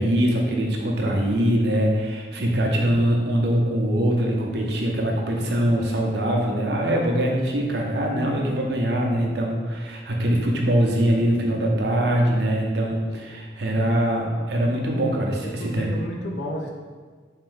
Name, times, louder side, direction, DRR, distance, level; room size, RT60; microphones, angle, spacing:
voice 1, 0.0-15.9, right 1 dB, 65° right, 0 dB, 0.7 m, -23 dB
voice 2, 15.4-16.7, equal, 70° left, 0 dB, 0.6 m, -32 dB
3.9 x 2.6 x 3.7 m, 1.5 s
head